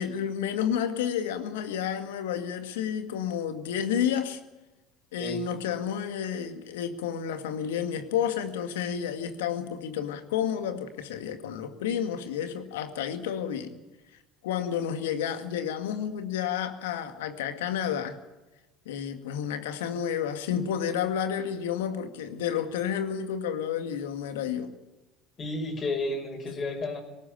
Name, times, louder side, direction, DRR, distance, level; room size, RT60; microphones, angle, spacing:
voice 1, 0.0-4.4 5.1-13.8 14.4-18.2 18.9-24.7, left 8 dB, 80° left, 8 dB, 2.0 m, -30 dB
voice 2, 25.4-27.0, left 2 dB, 40° left, 3 dB, 5.9 m, -32 dB
19.0 x 18.5 x 9.0 m, 1.1 s
hypercardioid pair, 70°, 0 cm